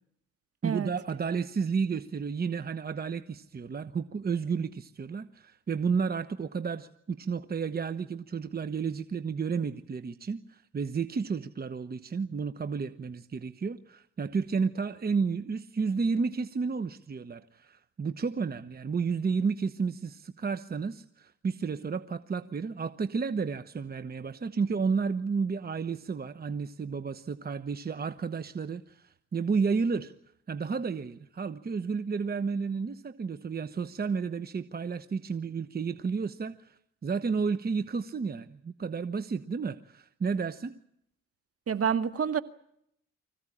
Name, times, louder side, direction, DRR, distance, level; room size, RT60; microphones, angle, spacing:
voice 1, 0.6-30.1 30.5-40.7, right 5 dB, 30° right, 1.1 m, -32 dB
voice 2, 41.7-42.4, right 7 dB, 50° right, 1.8 m, -28 dB
25.5 x 15.5 x 10.0 m
cardioid pair, 90°, 30 cm